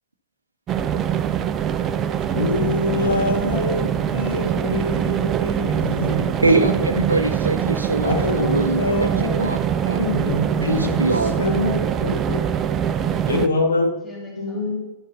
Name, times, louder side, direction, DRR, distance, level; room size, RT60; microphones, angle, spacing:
sound 1, 0.7-13.5, right 9 dB, 25° right, 0.5 m, -23 dB
voice 1, 2.3-3.8 4.1-6.6 8.0-9.5 10.0-11.0 11.4-12.4 13.3-13.9 14.4-14.8, left 2 dB, 70° left, 1 dB, 2.0 m, -24 dB
voice 2, 6.1-9.6 9.9-10.1 10.6-11.4, right 2 dB, 80° right, 5 dB, 0.5 m, -23 dB
voice 3, 10.4-11.6 14.0-14.8, equal, 10° left, -4 dB, 2.8 m, -40 dB
10.5 x 7.7 x 4.1 m, 1.1 s
figure-of-eight pair, 100°, 0 cm